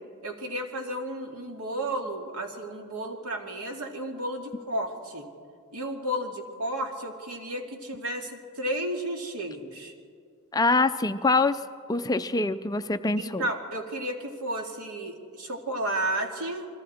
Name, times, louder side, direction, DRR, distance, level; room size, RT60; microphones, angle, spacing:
voice 1, 0.2-5.3 5.7-9.9 13.2-16.7, right 1 dB, 80° right, 3 dB, 2.3 m, -32 dB
voice 2, 10.5-11.6 11.9-13.5, left 3 dB, 15° left, 11 dB, 0.4 m, -24 dB
29.0 x 21.0 x 4.3 m, 2.2 s
head